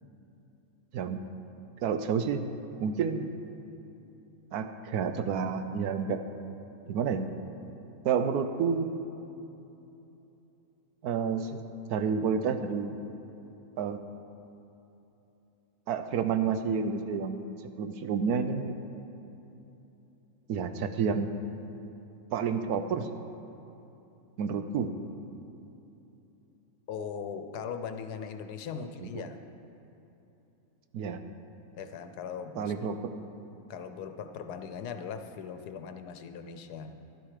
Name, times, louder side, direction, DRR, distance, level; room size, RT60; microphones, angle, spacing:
voice 1, 1.8-2.4 2.8-3.3 4.5-6.2 6.9-7.3 8.0-8.9 11.0-11.6 11.9-12.9 13.8-14.0 15.9-17.5 17.8-18.7 20.5-21.3 22.3-23.1 24.4-25.0 28.8-29.2 30.9-31.2 32.6-33.2, right 6 dB, 75° right, 8 dB, 1.2 m, -30 dB
voice 2, 26.9-29.4 31.8-32.7 33.7-36.9, left 6 dB, 85° left, 8 dB, 1.3 m, -39 dB
12.0 x 11.5 x 4.9 m, 3.0 s
omnidirectional pair, 1.6 m